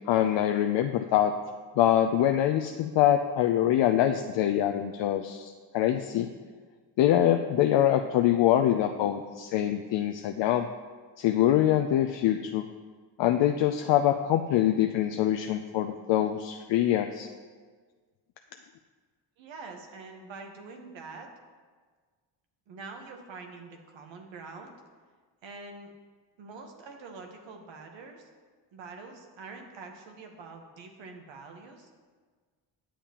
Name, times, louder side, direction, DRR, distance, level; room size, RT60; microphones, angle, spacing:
voice 1, 0.0-1.3 1.8-6.3 7.0-10.7 11.2-12.7 13.2-17.3, left 11 dB, 70° left, 6 dB, 0.5 m, -24 dB
voice 2, 19.4-21.3 22.7-24.7 25.4-25.9 26.4-28.3 28.7-31.9, right 4 dB, 80° right, 4 dB, 1.2 m, -45 dB
10.0 x 7.2 x 2.9 m, 1.5 s
cardioid pair, 100°, 45 cm